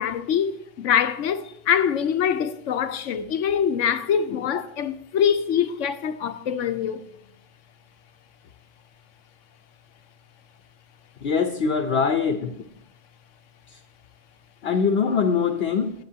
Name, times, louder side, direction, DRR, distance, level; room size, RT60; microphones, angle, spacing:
voice 1, 0.0-7.1, left 8 dB, 85° left, 1.0 m, -24 dB
voice 2, 11.2-12.5 14.6-15.9, left 5 dB, 60° left, 0.9 m, -22 dB
18.5 x 7.9 x 2.8 m
omnidirectional pair, 1.3 m